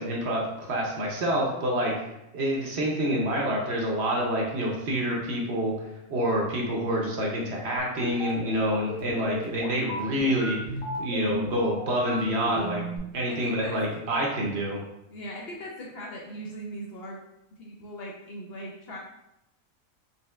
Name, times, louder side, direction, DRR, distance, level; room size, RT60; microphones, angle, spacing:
voice 1, 0.0-1.9 2.3-5.7 6.1-10.6 11.0-12.8 13.1-14.8, equal, 60° right, -1 dB, 0.9 m, -27 dB
sound 1, 7.8-13.0, equal, 75° left, 1.4 m, -35 dB
voice 2, 13.3-13.7 15.1-17.2 17.6-19.0, equal, 60° left, -3 dB, 0.7 m, -39 dB
4.2 x 3.3 x 2.2 m, 0.86 s
omnidirectional pair, 1.4 m